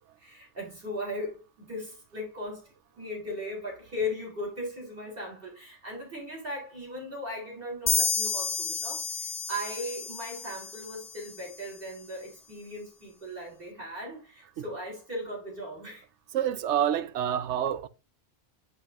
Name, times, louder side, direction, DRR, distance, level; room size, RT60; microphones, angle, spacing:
voice 1, 0.2-2.7 3.0-16.1, left 1 dB, 55° right, 4.0 m, -38 dB
sound 1, 7.9-11.5, left 5 dB, 40° left, 1.0 m, -31 dB
voice 2, 16.3-17.9, right 10 dB, 85° right, 1.0 m, -27 dB
10.0 x 5.5 x 2.6 m
omnidirectional pair, 1.1 m